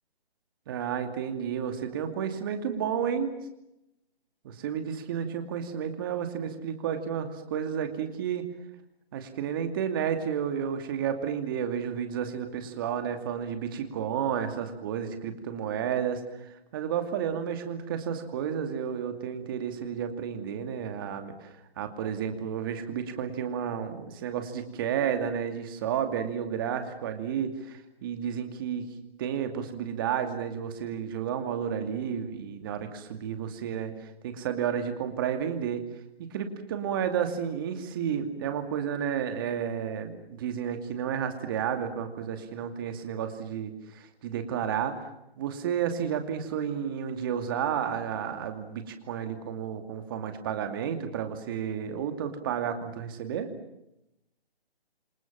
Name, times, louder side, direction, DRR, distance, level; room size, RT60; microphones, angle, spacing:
voice 1, 0.7-3.3 4.4-8.5 9.1-28.9 29.2-35.9 36.2-45.1 45.4-53.5, right 8 dB, 20° right, 7 dB, 2.6 m, -31 dB
28.0 x 26.0 x 7.5 m, 0.88 s
hypercardioid pair, 170°, 31 cm